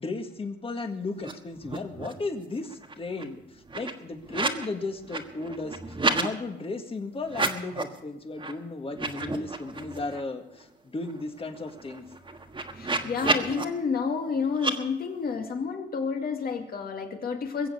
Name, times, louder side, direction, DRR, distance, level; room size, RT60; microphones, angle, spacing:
voice 1, 0.0-12.0, left 3 dB, 30° left, 6 dB, 1.8 m, -35 dB
sound 1, 1.2-1.3 1.6-2.3 2.6-4.7 5.0-6.3 7.2-8.0 8.4-8.5 8.9-10.2 10.6-10.7 11.0-13.6 14.5-14.7, right 3 dB, 25° right, 1.5 m, -31 dB
voice 2, 12.8-17.7, left 5 dB, 50° left, 4 dB, 2.3 m, -30 dB
22.0 x 7.7 x 6.4 m, 0.88 s
cardioid pair, 90°, 20 cm